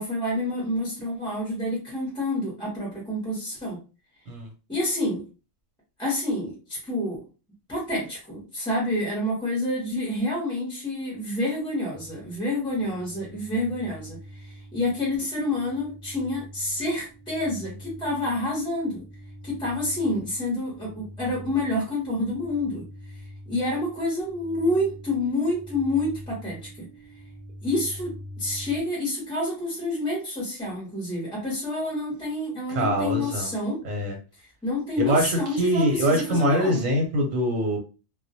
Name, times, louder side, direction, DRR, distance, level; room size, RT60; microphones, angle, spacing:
voice 1, 0.0-3.8 4.7-5.3 6.0-7.2 7.7-19.0 19.4-23.2 23.5-26.9 27.6-33.8 34.6-36.8, left 1 dB, 5° left, -5 dB, 0.6 m, -28 dB
sound 1, 11.9-28.8, equal, 60° right, 0.4 m, -44 dB
voice 2, 32.7-33.5 33.8-34.2 35.0-37.8, equal, 85° right, 1 dB, 1.1 m, -24 dB
2.2 x 2.1 x 2.7 m, 0.32 s
omnidirectional pair, 1.3 m